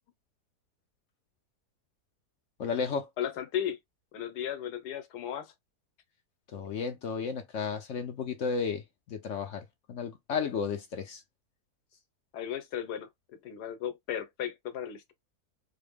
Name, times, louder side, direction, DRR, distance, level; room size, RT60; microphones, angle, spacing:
voice 1, 2.6-3.1 6.5-8.8 9.1-11.2, left 5 dB, 60° left, 0.8 m, -33 dB
voice 2, 3.2-3.8 4.1-5.5 12.3-13.1 13.4-15.1, left 9 dB, 80° left, 1.3 m, -35 dB
4.2 x 2.1 x 3.5 m
omnidirectional pair, 1.7 m